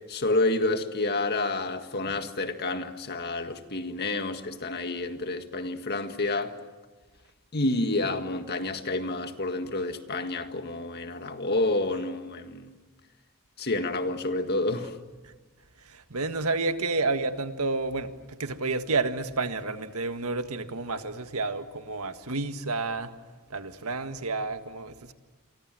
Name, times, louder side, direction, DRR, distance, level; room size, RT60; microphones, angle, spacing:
voice 1, 0.1-6.5 7.5-12.7 13.6-14.9, left 2 dB, 50° left, 1.8 m, -29 dB
voice 2, 15.8-23.1 23.5-25.1, right 3 dB, 85° right, 1.7 m, -30 dB
28.5 x 24.5 x 7.7 m
head